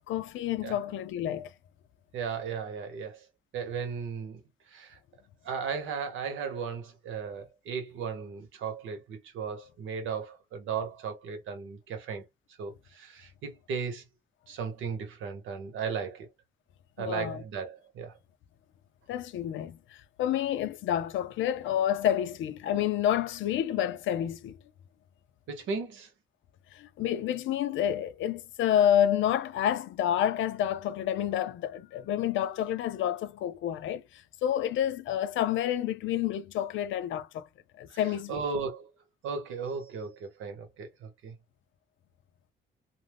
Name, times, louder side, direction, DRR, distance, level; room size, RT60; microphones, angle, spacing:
voice 1, 0.1-1.5 17.0-17.4 19.1-24.6 26.7-37.5 37.8-38.4, left 10 dB, 75° left, 0.5 m, -29 dB
voice 2, 2.1-3.2 3.5-4.4 4.7-5.0 5.4-12.2 12.6-14.0 14.5-16.3 17.0-18.1 25.5-26.1 37.9-38.0 38.3-38.9 39.2-41.3, right 6 dB, 80° right, 1.0 m, -36 dB
2.6 x 2.2 x 3.4 m
cardioid pair, 90°, 20 cm